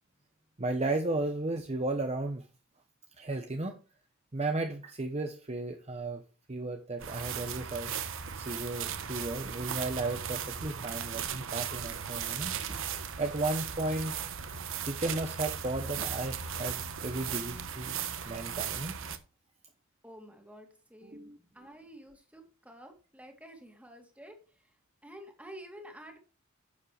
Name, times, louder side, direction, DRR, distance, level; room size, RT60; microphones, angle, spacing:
voice 1, 0.6-2.4 3.2-3.8 4.3-6.2 6.5-7.9 8.3-12.8 13.2-14.1 14.8-18.0 18.2-18.9 21.0-21.4, right 2 dB, 30° right, 5 dB, 0.9 m, -34 dB
sound 1, 7.0-19.2, right 8 dB, 65° right, 1.1 m, -37 dB
voice 2, 20.0-24.4 25.0-26.2, equal, 5° right, 3 dB, 2.3 m, -50 dB
10.5 x 7.5 x 3.3 m, 0.35 s
head